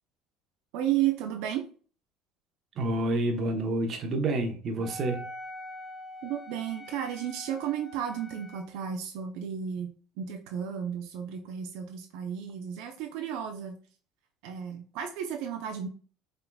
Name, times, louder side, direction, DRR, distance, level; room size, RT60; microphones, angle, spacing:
voice 1, 0.7-1.6 6.2-13.8 14.4-15.9, right 9 dB, 75° right, 4 dB, 0.6 m, -33 dB
voice 2, 2.8-5.3, right 2 dB, 40° right, 4 dB, 1.0 m, -28 dB
Wind instrument woodwind instrument, 4.8-8.7, left 1 dB, 5° left, 0.5 m, -44 dB
5.7 x 3.7 x 2.3 m, 0.40 s
cardioid pair, 135°, 0 cm